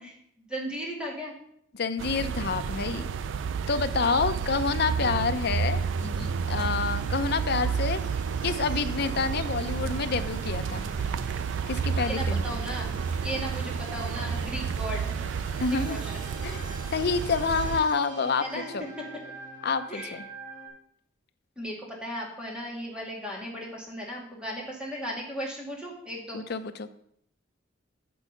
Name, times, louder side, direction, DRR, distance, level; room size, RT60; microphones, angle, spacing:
voice 1, 0.0-1.3 12.0-12.9 13.2-15.1 15.5-15.6 15.9-16.1 18.4-18.7 19.9-20.2 21.6-26.4, equal, 5° right, -3 dB, 2.0 m, -36 dB
voice 2, 1.7-3.1 3.7-8.0 8.4-10.9 11.7-12.6 15.6-16.0 16.4-16.6 16.9-18.4 18.7-18.8 19.6-20.2 26.3-26.9, left 4 dB, 55° left, 10 dB, 0.6 m, -28 dB
sound 1, 2.0-17.8, right 6 dB, 70° right, 0.3 m, -31 dB
sound 2, 5.7-20.7, right 2 dB, 45° right, 2.1 m, -46 dB
7.0 x 6.2 x 5.5 m, 0.70 s
head